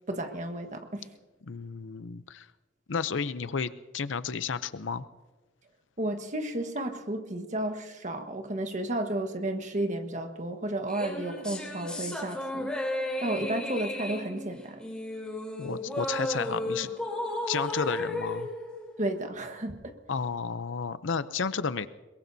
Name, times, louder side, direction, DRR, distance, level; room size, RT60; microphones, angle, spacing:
voice 1, 0.1-1.1 6.0-12.7 13.2-14.8 19.0-20.0, right 1 dB, 40° right, 6 dB, 1.4 m, -32 dB
voice 2, 1.4-2.5 2.9-5.1 15.6-16.9 17.5-18.5 20.1-21.9, left 5 dB, 75° left, 14 dB, 0.6 m, -32 dB
sound 1, 10.9-19.5, left 1 dB, 5° left, 3.4 m, -34 dB
22.5 x 22.0 x 2.7 m, 1.2 s
head